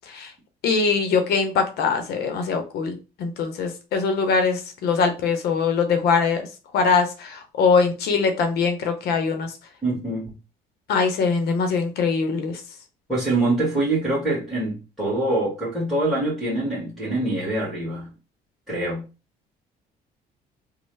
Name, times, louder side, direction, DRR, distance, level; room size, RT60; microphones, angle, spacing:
voice 1, 0.6-6.4 6.7-9.5 10.9-12.6, left 5 dB, 70° left, 0.7 m, -22 dB
voice 2, 9.8-10.3 13.1-18.1 18.7-19.0, right 2 dB, ahead, 1.5 m, -24 dB
3.0 x 2.0 x 3.2 m
cardioid pair, 110°, 17 cm